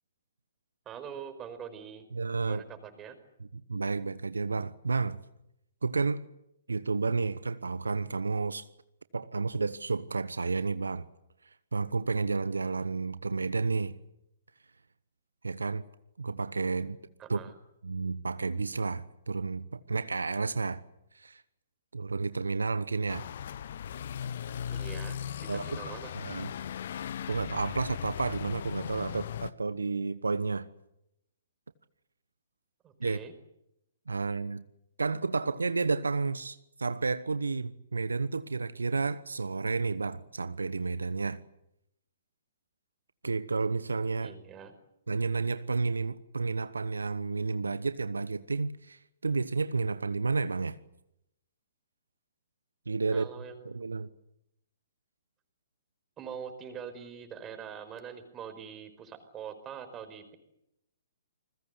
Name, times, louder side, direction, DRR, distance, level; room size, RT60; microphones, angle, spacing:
voice 1, 0.8-2.0 2.4-3.2 17.2-17.5 24.7-26.1 32.8-33.3 44.2-44.7 53.1-53.8 56.2-60.4, right 7 dB, 20° right, 5.0 m, -44 dB
voice 2, 2.1-2.6 3.4-5.2 5.8-6.3 6.7-8.7 9.1-11.1 11.7-14.0 15.4-15.8 16.2-17.0 17.3-17.4 17.8-20.8 21.1-21.4 21.9-23.3 25.5-25.8 26.1-26.5 27.3-30.7 33.0-33.2 34.1-34.6 35.0-41.4 43.2-44.3 45.1-50.8 52.9-53.3 53.6-54.1, right 4 dB, 80° right, 1.1 m, -31 dB
sound 1, 23.1-29.5, left 9 dB, 55° left, 1.1 m, -38 dB
29.0 x 21.5 x 8.2 m
figure-of-eight pair, 125°, 0 cm